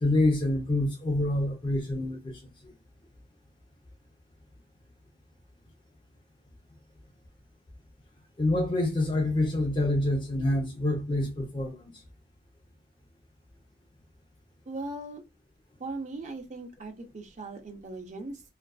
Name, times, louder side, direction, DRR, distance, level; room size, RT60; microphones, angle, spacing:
voice 1, 0.0-2.3 8.4-12.0, left 1 dB, 25° left, 0.6 m, -27 dB
voice 2, 14.7-15.2 15.8-18.4, right 2 dB, 40° right, 0.5 m, -39 dB
2.4 x 2.2 x 2.3 m
head